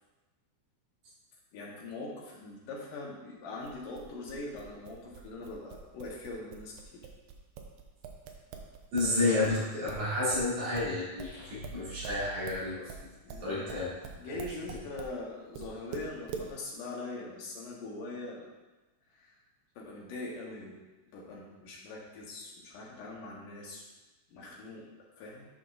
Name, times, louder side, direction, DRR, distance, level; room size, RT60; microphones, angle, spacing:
voice 1, 1.5-7.1 13.2-13.7 14.2-18.5 19.1-19.3 19.8-20.8 21.1-23.8 24.3-24.9 25.2-25.5, left 2 dB, 75° left, -3 dB, 2.8 m, -42 dB
sound 1, 3.6-9.2 9.4-15.2 15.5-16.5, right 6 dB, 90° right, 2.5 m, -44 dB
voice 2, 8.9-12.9 13.4-13.9 14.2-14.3, left 2 dB, 60° right, -9 dB, 3.6 m, -30 dB
sound 2, 11.2-13.8, right 4 dB, 30° left, 2.3 m, -49 dB
9.2 x 5.9 x 2.6 m, 1.1 s
omnidirectional pair, 3.9 m